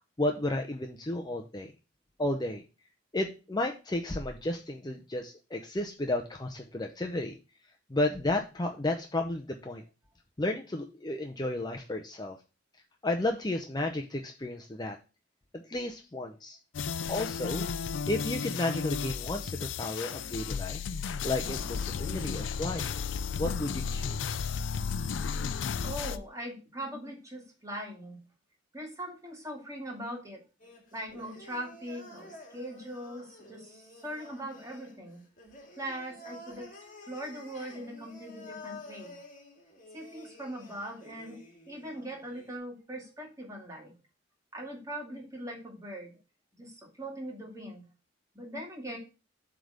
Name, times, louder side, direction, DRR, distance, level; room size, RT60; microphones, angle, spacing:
voice 1, 0.2-1.7 2.2-2.6 3.1-7.4 7.9-9.8 10.4-12.4 13.0-15.0 15.5-16.6 17.1-17.7 18.1-20.8 21.2-23.0 23.4-24.5, left 2 dB, 20° left, 3 dB, 0.6 m, -33 dB
sound 1, 16.7-26.2, left 6 dB, 75° left, 0.4 m, -34 dB
voice 2, 25.8-28.2 28.7-30.4 30.9-35.2 35.8-36.7 37.1-39.2 39.9-41.4 41.7-43.9 44.5-46.1 46.5-47.8 48.3-49.0, right 1 dB, 15° right, 0 dB, 2.2 m, -41 dB
sound 2, 30.6-42.6, left 2 dB, 45° left, 2.0 m, -50 dB
7.7 x 3.5 x 6.4 m, 0.31 s
head